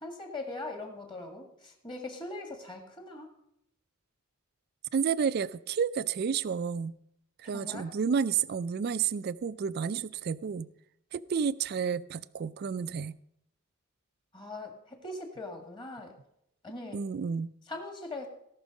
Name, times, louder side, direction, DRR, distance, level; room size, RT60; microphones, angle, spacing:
voice 1, 0.0-3.3 7.4-7.9 14.3-16.2 16.6-17.0 17.7-18.3, left 2 dB, 25° left, 3 dB, 1.8 m, -41 dB
voice 2, 4.9-6.9 7.4-10.7 11.1-13.2 16.9-17.5, right 6 dB, 50° right, 16 dB, 0.3 m, -30 dB
17.0 x 6.1 x 5.2 m, 0.77 s
head